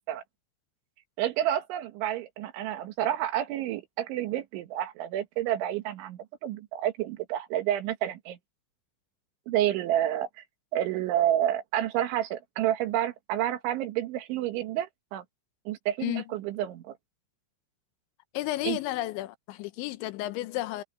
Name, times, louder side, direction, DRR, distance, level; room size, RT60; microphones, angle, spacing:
voice 1, 1.2-8.4 9.5-10.4 10.7-15.2 15.7-17.0 18.6-18.8, right 12 dB, 80° right, 3.9 m, -29 dB
voice 2, 18.3-20.8, left 16 dB, 80° left, 3.1 m, -32 dB
omnidirectional pair, 5.4 m